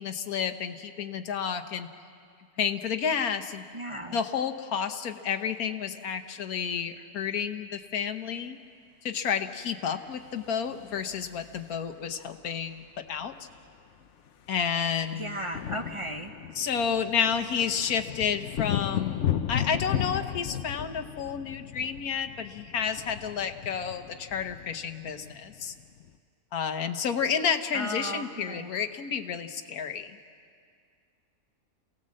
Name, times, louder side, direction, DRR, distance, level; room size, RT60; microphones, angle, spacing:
voice 1, 0.0-1.9 2.6-3.6 4.1-8.6 9.0-13.3 14.5-15.4 16.5-25.7 26.5-30.1, left 7 dB, 90° left, 8 dB, 1.5 m, -30 dB
voice 2, 3.7-4.2 15.2-16.3 27.7-28.7, right 1 dB, 25° right, 4 dB, 0.9 m, -35 dB
sound 1, 10.3-11.9 13.2-13.3 13.5-13.7 14.0-26.1, left 10 dB, 60° left, 1.0 m, -35 dB
28.0 x 18.0 x 7.6 m, 2.2 s
omnidirectional pair, 1.5 m